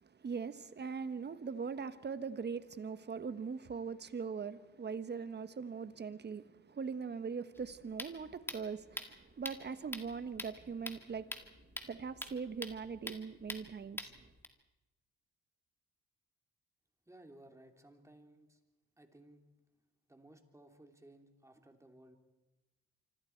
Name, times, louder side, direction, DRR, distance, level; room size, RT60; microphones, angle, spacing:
voice 1, 0.0-14.3, right 5 dB, 35° right, 1.2 m, -41 dB
sound 1, 7.5-14.5, left 1 dB, 5° left, 1.9 m, -46 dB
voice 2, 17.1-18.6 19.0-19.4 20.1-22.2, right 1 dB, 10° right, 2.9 m, -59 dB
26.0 x 25.0 x 4.5 m
cardioid pair, 90°, 30 cm